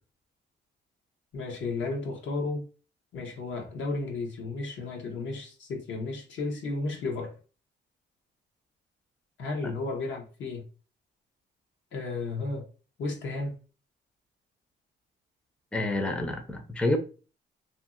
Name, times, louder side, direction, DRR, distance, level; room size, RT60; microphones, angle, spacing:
voice 1, 1.3-2.6 3.1-7.3 9.4-10.7 11.9-12.7 13.0-13.5, left 3 dB, 70° left, 0.9 m, -33 dB
voice 2, 15.7-17.0, left 2 dB, 5° left, 0.5 m, -28 dB
2.7 x 2.7 x 2.4 m
cardioid pair, 90°, 20 cm